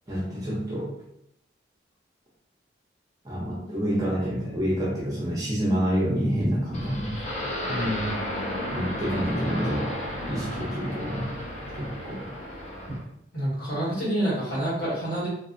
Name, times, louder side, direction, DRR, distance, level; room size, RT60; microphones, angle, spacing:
voice 1, 0.1-0.9 3.2-7.2 8.7-9.9 10.3-11.3 11.8-12.3, equal, 20° right, -5 dB, 0.6 m, -28 dB
sound 1, 6.7-13.0, left 1 dB, 40° left, 0.7 m, -33 dB
voice 2, 7.7-8.1 13.3-15.3, right 1 dB, 55° left, -8 dB, 1.5 m, -27 dB
2.6 x 2.4 x 2.5 m, 0.77 s
head